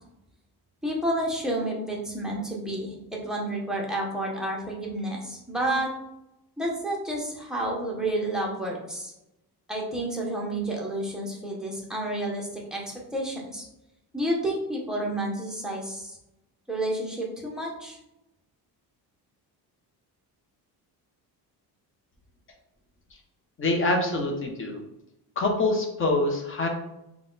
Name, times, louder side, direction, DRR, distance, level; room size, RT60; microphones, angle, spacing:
voice 1, 0.8-5.9 6.6-9.1 9.7-13.6 14.1-16.2 16.7-18.0, right 1 dB, ahead, -3 dB, 0.8 m, -30 dB
voice 2, 23.6-24.8 25.4-26.7, left 2 dB, 30° left, 3 dB, 0.8 m, -25 dB
4.0 x 2.3 x 3.9 m, 0.87 s
cardioid pair, 145°, 39 cm